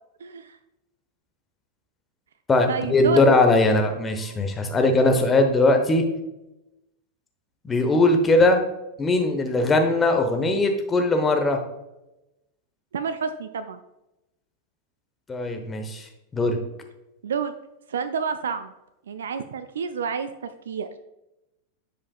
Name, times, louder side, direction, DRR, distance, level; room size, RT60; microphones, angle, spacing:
voice 1, 0.2-0.6 2.7-3.3 12.9-13.8 17.2-17.5 17.9-18.7 19.1-20.9, right 5 dB, 65° right, 11 dB, 0.3 m, -29 dB
voice 2, 2.5-6.0 7.6-8.6 9.0-11.6 15.3-16.0 16.3-16.6, left 2 dB, 15° left, 5 dB, 1.0 m, -20 dB
9.7 x 5.1 x 2.3 m, 0.94 s
figure-of-eight pair, 90°, 0 cm